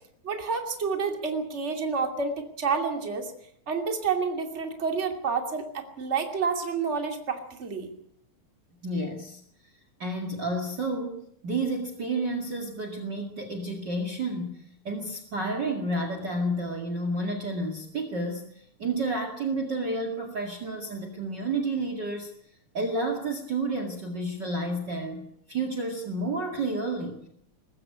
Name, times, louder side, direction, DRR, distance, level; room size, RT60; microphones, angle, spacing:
voice 1, 0.2-3.3 3.7-7.9, right 5 dB, 25° right, 4 dB, 2.7 m, -29 dB
voice 2, 8.8-9.4 10.0-22.3 22.7-27.3, right 2 dB, 40° right, 6 dB, 2.5 m, -31 dB
20.5 x 15.0 x 9.7 m, 0.69 s
omnidirectional pair, 3.4 m